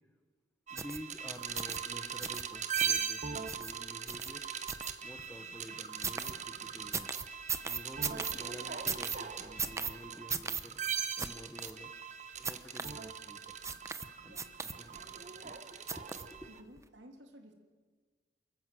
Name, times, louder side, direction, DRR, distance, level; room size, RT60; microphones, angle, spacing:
voice 1, 0.7-4.4 5.0-7.2 7.6-10.8 11.2-11.9 12.4-13.6 14.2-15.0 15.4-15.6 16.0-16.1 16.3-16.5, equal, 10° left, 5 dB, 1.1 m, -50 dB
sound 1, 0.7-16.6, right 7 dB, 40° right, 1.2 m, -40 dB
sound 2, 0.8-1.0 1.5-1.8 2.2-2.4 2.8-3.0 3.5-3.7 4.1-4.3 4.7-5.3 6.0-6.3 6.9-8.3 8.9-9.2 9.6-9.9 10.3-10.6 11.2-11.3 11.6-11.7 12.4-12.9 13.6-14.1 14.3-15.0 15.9-16.3 16.8-16.9, right 5 dB, 15° right, 0.9 m, -37 dB
voice 2, 14.2-14.6 16.4-17.5, equal, 75° right, 4 dB, 3.0 m, -55 dB
28.5 x 14.5 x 7.8 m, 1.5 s
head